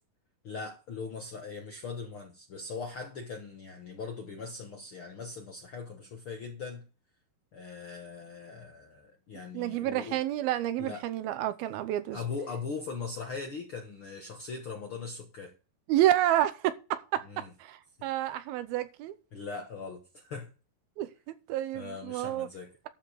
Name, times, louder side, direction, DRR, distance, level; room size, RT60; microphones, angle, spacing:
voice 1, 0.4-6.8 7.5-10.2 10.8-11.1 12.1-15.5 17.2-17.5 19.3-20.5 21.7-22.7, left 4 dB, 65° left, 1.3 m, -40 dB
voice 2, 9.5-12.2 15.9-19.2 21.0-21.1 21.5-22.5, right 13 dB, 85° right, 2.7 m, -29 dB
12.5 x 4.9 x 6.5 m
omnidirectional pair, 4.3 m